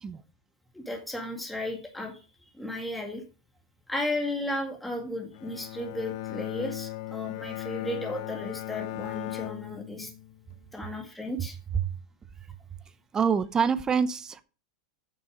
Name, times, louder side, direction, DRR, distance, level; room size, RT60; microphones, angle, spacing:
voice 1, 0.7-2.1 2.4-3.2 3.9-10.1 10.7-11.6, left 1 dB, ahead, 2.0 m, -34 dB
Bowed string instrument, 5.3-10.6, left 15 dB, 55° left, 0.7 m, -37 dB
voice 2, 13.1-14.4, right 6 dB, 15° right, 0.7 m, -25 dB
9.8 x 6.9 x 5.1 m
supercardioid pair, 155°, 4 cm